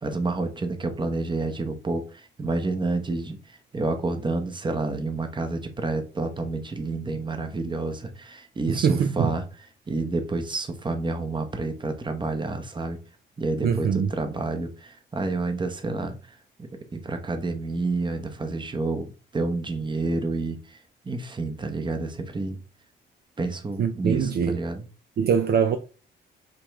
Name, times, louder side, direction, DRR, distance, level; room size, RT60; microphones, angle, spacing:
voice 1, 0.0-13.0 13.4-20.8 21.0-22.6 23.4-24.9, right 3 dB, 25° right, 0.9 m, -29 dB
voice 2, 8.7-9.3 13.6-14.1 23.8-24.6 25.2-25.8, right 7 dB, 55° right, 0.5 m, -23 dB
5.0 x 3.0 x 3.5 m
cardioid pair, 90°, 20 cm